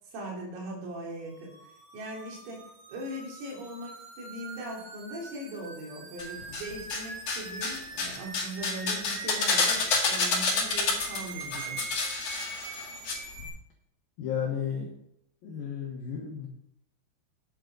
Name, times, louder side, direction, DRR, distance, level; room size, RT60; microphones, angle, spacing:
voice 1, 0.1-1.6 1.9-11.9, right 1 dB, 85° right, -2 dB, 5.4 m, -40 dB
sound 1, 1.3-13.5, right 3 dB, 60° right, 3.9 m, -43 dB
sound 2, 6.2-7.0 7.3-13.1 13.4-13.5, left 4 dB, 55° left, 1.8 m, -28 dB
voice 2, 14.2-14.9 15.4-16.5, left 8 dB, 75° left, -2 dB, 2.2 m, -33 dB
11.0 x 8.8 x 3.9 m, 0.74 s
omnidirectional pair, 5.8 m